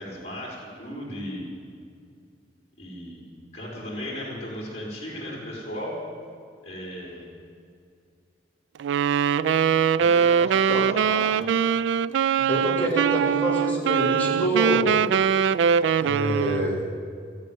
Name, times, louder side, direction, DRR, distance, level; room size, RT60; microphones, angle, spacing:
voice 1, 0.0-1.5 2.8-3.2 3.5-5.9 6.6-7.3 10.0-11.7, equal, 40° left, -4 dB, 4.6 m, -36 dB
Wind instrument woodwind instrument, 8.8-16.8, right 7 dB, 85° right, 0.3 m, -22 dB
voice 2, 12.5-14.9 16.0-16.8, equal, 10° left, -6 dB, 3.5 m, -26 dB
14.5 x 9.2 x 9.3 m, 2.3 s
head